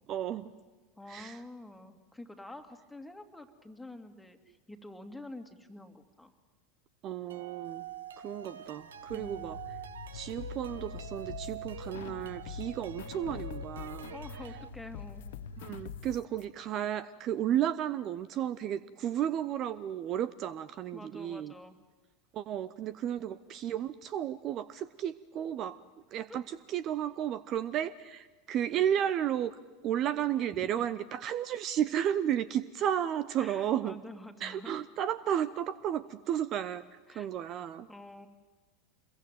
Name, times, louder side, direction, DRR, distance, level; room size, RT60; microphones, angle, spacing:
voice 1, 0.1-0.5 1.1-1.4 7.0-7.9 8.2-9.6 10.1-14.1 15.6-21.5 22.3-25.8 26.1-29.6 29.8-34.0 34.4-37.9, right 10 dB, 40° right, 16 dB, 0.8 m, -33 dB
voice 2, 1.0-6.3 9.1-9.5 14.1-15.3 20.9-21.8 26.3-26.4 33.4-34.7 37.1-37.3 37.9-38.3, left 1 dB, 5° left, 6 dB, 2.5 m, -47 dB
sound 1, 7.3-14.7, right 9 dB, 75° right, 1.0 m, -46 dB
sound 2, 7.7-16.1, left 3 dB, 80° left, 1.5 m, -47 dB
sound 3, 10.4-12.2 12.5-16.4, left 13 dB, 60° left, 0.8 m, -45 dB
26.5 x 22.5 x 9.3 m, 1.3 s
figure-of-eight pair, 80°, 0 cm